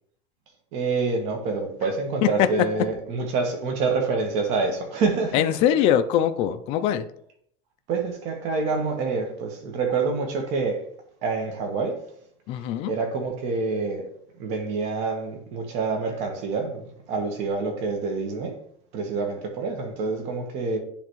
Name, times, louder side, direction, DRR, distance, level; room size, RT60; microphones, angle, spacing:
voice 1, 0.7-5.3 7.9-10.8 11.2-12.0 12.9-14.1 14.4-18.6 18.9-20.8, right 4 dB, 50° right, 1.3 m, -27 dB
voice 2, 5.3-7.1 12.5-12.9, left 10 dB, 45° left, 0.4 m, -22 dB
10.5 x 3.4 x 3.1 m
cardioid pair, 165°, 15 cm